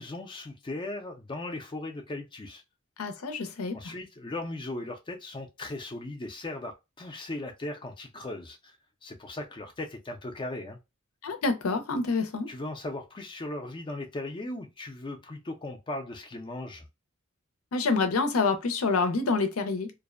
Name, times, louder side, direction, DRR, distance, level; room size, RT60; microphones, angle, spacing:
voice 1, 0.0-2.6 3.7-8.8 9.0-10.8 12.5-16.9, left 2 dB, 25° left, 0.4 m, -38 dB
voice 2, 3.0-3.9 11.2-12.5 17.7-19.9, left 4 dB, 85° left, 0.5 m, -27 dB
2.5 x 2.0 x 2.4 m
head